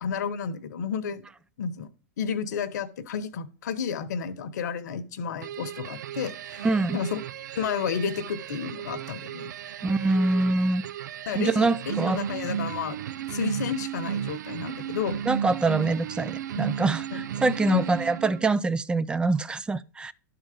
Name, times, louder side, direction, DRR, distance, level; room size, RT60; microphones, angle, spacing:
voice 1, 0.0-1.2 1.6-1.9 2.2-6.7 6.9-7.2 7.5-9.5 11.3-13.0 13.3-15.2 17.1-17.3 17.7-17.9, left 6 dB, 75° left, 1.1 m, -31 dB
sound 1, 5.4-18.6, right 9 dB, 85° right, 0.4 m, -34 dB
voice 2, 6.6-7.0 9.8-10.8 11.3-12.2 15.3-20.1, right 3 dB, 10° right, 0.4 m, -25 dB
11.5 x 4.0 x 5.0 m
hypercardioid pair, 125°, 10 cm